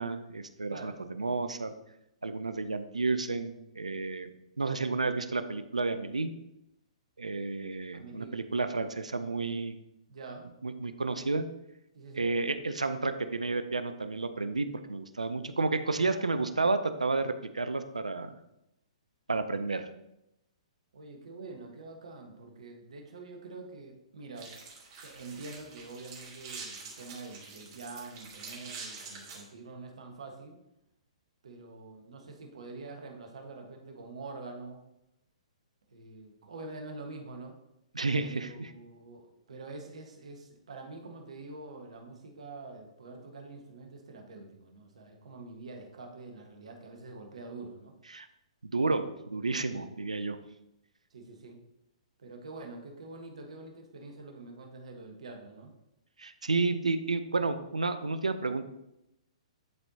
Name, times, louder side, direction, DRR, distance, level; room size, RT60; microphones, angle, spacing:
voice 1, 0.0-1.7 2.2-4.3 4.6-6.3 7.2-9.8 10.6-11.5 12.2-18.3 19.3-19.9 37.9-38.7 48.1-48.3 48.7-50.4 56.2-58.7, right 3 dB, 90° right, 10 dB, 0.5 m, -31 dB
voice 2, 7.9-8.4 10.1-10.5 11.9-12.3 16.1-16.6 20.9-24.5 25.0-30.6 31.4-34.8 35.9-37.5 38.2-47.9 49.7-49.9 51.1-51.6 52.2-55.7, right 3 dB, 70° right, 3 dB, 1.4 m, -46 dB
sound 1, 24.4-29.4, right 4 dB, 45° right, 2.3 m, -46 dB
11.0 x 4.4 x 2.8 m, 0.85 s
figure-of-eight pair, 125°, 4 cm